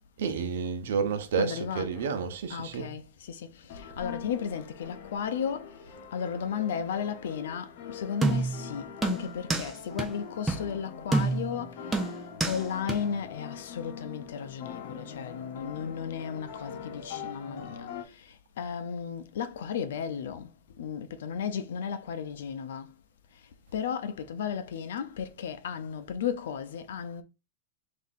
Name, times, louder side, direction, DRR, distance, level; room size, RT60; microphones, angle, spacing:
voice 1, 0.2-2.9, right 6 dB, 85° right, 0.8 m, -30 dB
voice 2, 1.3-2.0 2.5-23.0 23.3-27.2, left 7 dB, 85° left, 0.6 m, -35 dB
sound 1, 1.9-2.1 3.7-18.0, left 7 dB, 55° left, 1.0 m, -43 dB
sound 2, 8.2-8.6 9.0-9.7 10.0-10.1 10.5-10.7 11.1-11.6 11.9-12.6 12.9-13.0, right 3 dB, 10° right, 0.6 m, -27 dB
3.6 x 2.7 x 4.1 m
supercardioid pair, 155°, 0 cm